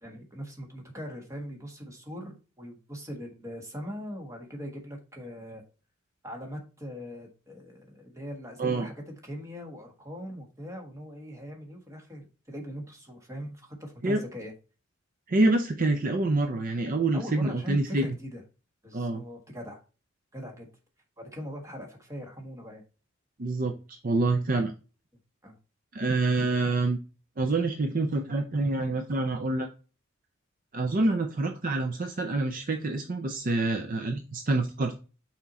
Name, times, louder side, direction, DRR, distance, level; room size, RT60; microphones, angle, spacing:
voice 1, 0.0-5.6 6.2-14.5 17.1-18.4 18.8-19.8 20.3-20.7 21.2-22.8 25.4-25.6, equal, 15° right, 2 dB, 1.5 m, -41 dB
voice 2, 15.3-18.1 18.9-19.2 23.4-24.7 25.9-27.0 27.4-29.7 30.7-34.9, right 2 dB, 45° right, 6 dB, 0.5 m, -27 dB
6.0 x 4.4 x 4.0 m, 0.34 s
head